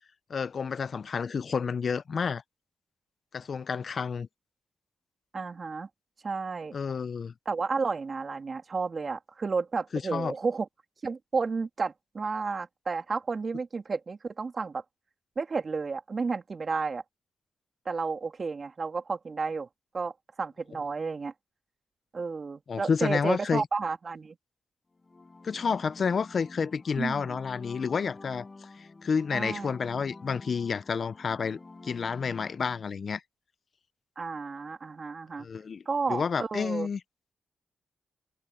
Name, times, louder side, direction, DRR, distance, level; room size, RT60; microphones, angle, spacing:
voice 1, 0.3-2.4 3.3-4.3 6.7-7.3 9.9-10.3 22.7-23.6 25.4-28.5 28.8-33.2 35.4-35.8 36.1-37.0, left 6 dB, 60° left, 0.7 m, -30 dB
voice 2, 5.3-5.9 6.2-6.7 7.4-10.7 11.0-14.8 15.4-17.0 17.8-19.7 19.9-21.3 22.1-24.4 27.0-27.4 29.3-29.7 34.2-35.5 35.8-36.9, right 4 dB, 50° right, 3.2 m, -32 dB
sound 1, 24.9-32.8, left 3 dB, 35° left, 7.9 m, -48 dB
supercardioid pair, 50°, 0 cm